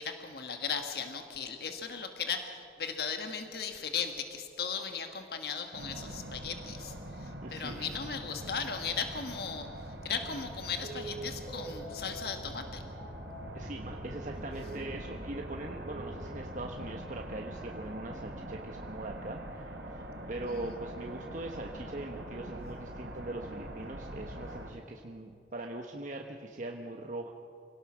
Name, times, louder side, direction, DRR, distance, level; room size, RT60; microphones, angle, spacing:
voice 1, 0.0-9.7 10.0-12.8 20.5-20.7, left 6 dB, 60° left, 5 dB, 1.5 m, -37 dB
sound 1, 5.7-24.7, right 1 dB, 80° right, 3.0 m, -43 dB
voice 2, 7.4-7.9 13.5-27.3, right 2 dB, 45° right, 2 dB, 1.1 m, -41 dB
sound 2, 10.8-16.1, right 2 dB, 20° left, 4.6 m, -46 dB
26.0 x 18.0 x 6.2 m, 2.4 s
head